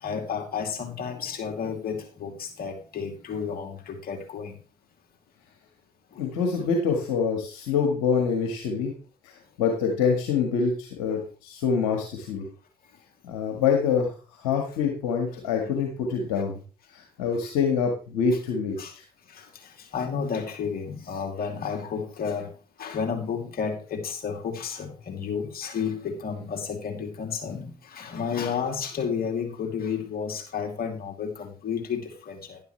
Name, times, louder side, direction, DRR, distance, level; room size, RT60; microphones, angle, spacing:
voice 1, 0.0-4.5 6.1-6.2 15.6-15.8 16.4-16.5 17.4-17.5 18.8-18.9 19.3-22.5 22.8-32.6, left 6 dB, 55° left, 2.8 m, -32 dB
voice 2, 6.2-8.9 9.2-12.4 13.2-14.1 14.4-16.6 16.9-19.0, left 6 dB, 85° left, 1.6 m, -26 dB
11.0 x 10.5 x 3.2 m
hypercardioid pair, 50°, 18 cm